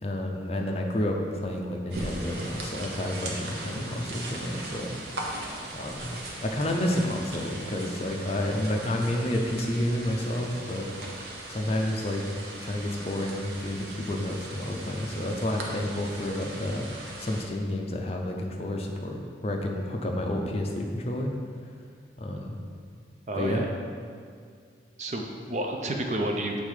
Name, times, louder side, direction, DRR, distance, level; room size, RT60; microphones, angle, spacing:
voice 1, 0.0-4.9 5.7-10.9 11.5-12.2 12.6-21.3 22.2-22.6 23.3-23.7, left 1 dB, 35° left, 1 dB, 0.6 m, -30 dB
sound 1, 1.9-17.5, right 1 dB, 70° right, 0.9 m, -39 dB
voice 2, 23.3-23.7 25.0-26.6, right 1 dB, 40° right, 2 dB, 0.6 m, -30 dB
7.3 x 3.6 x 4.9 m, 2.1 s
head